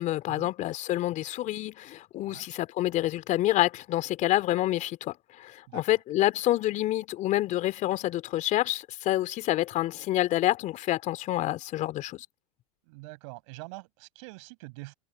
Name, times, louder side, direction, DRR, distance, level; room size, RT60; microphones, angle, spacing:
voice 1, 0.0-12.3, left 15 dB, 45° left, 2.8 m, -28 dB
voice 2, 12.9-14.9, right 28 dB, 60° right, 6.3 m, -44 dB
hypercardioid pair, 90°, 18 cm